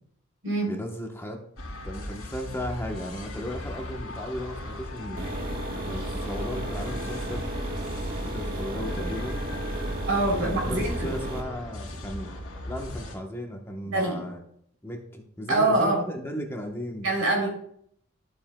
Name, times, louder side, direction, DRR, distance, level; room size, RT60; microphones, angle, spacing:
voice 1, 0.7-1.4 1.8-5.3 5.8-7.5 8.2-9.4 10.4-12.4 12.7-14.4 14.8-17.1, equal, 10° left, 2 dB, 1.0 m, -35 dB
sound 1, 1.6-13.2, left 1 dB, 85° left, 2.6 m, -38 dB
sound 2, 5.2-11.4, right 1 dB, 45° right, 1.3 m, -33 dB
voice 2, 10.1-10.9 13.9-14.2 15.5-16.0 17.0-17.5, right 2 dB, 80° right, 0 dB, 3.2 m, -24 dB
12.5 x 7.4 x 2.2 m, 0.67 s
head